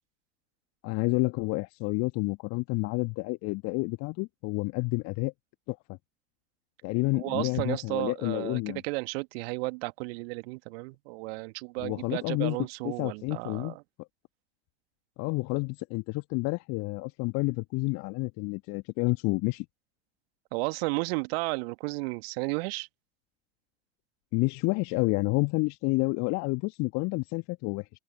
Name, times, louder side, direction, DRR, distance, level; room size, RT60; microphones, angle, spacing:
voice 1, 0.8-5.3 5.7-5.8 6.8-8.8 11.8-12.6 12.8-13.8 15.2-19.6 24.3-27.8, left 26 dB, 50° left, 1.8 m, -29 dB
voice 2, 7.1-13.8 20.5-22.9, right 28 dB, 60° right, 1.9 m, -33 dB
figure-of-eight pair, 75°, 35 cm